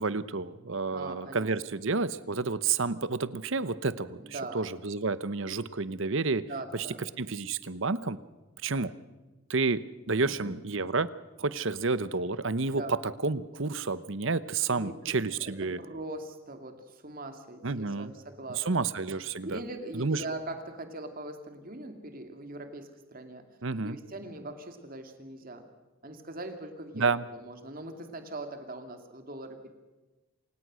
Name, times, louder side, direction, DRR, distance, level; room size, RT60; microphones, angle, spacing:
voice 1, 0.0-6.9 7.2-8.2 8.6-8.9 9.5-11.1 11.4-15.8 17.6-18.1 18.5-19.6 19.9-20.2 23.6-24.0 26.9-27.2, right 4 dB, 60° right, 16 dB, 0.9 m, -30 dB
voice 2, 0.9-1.5 4.2-4.6 6.4-7.0 10.2-10.5 12.7-12.9 14.7-18.8 19.4-23.4 23.8-25.6 26.0-29.7, right 2 dB, 40° right, 6 dB, 2.5 m, -41 dB
28.0 x 17.5 x 6.4 m, 1.2 s
head